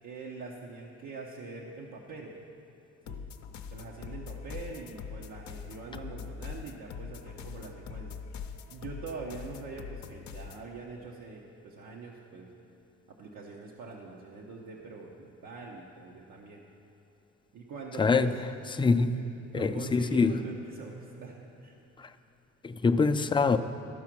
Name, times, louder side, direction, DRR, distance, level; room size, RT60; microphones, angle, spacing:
voice 1, 0.0-2.3 3.1-3.2 3.7-8.2 8.7-12.5 13.1-16.6 17.5-18.3 18.6-21.8, right 4 dB, 80° right, -3 dB, 1.0 m, -44 dB
sound 1, 3.1-10.7, left 6 dB, 65° left, 0.6 m, -43 dB
voice 2, 18.0-18.3 18.7-19.2 19.5-20.3 22.0-22.1 22.6-23.6, left 4 dB, 15° left, 8 dB, 0.4 m, -24 dB
13.0 x 4.9 x 6.0 m, 2.9 s
cardioid pair, 90°, 30 cm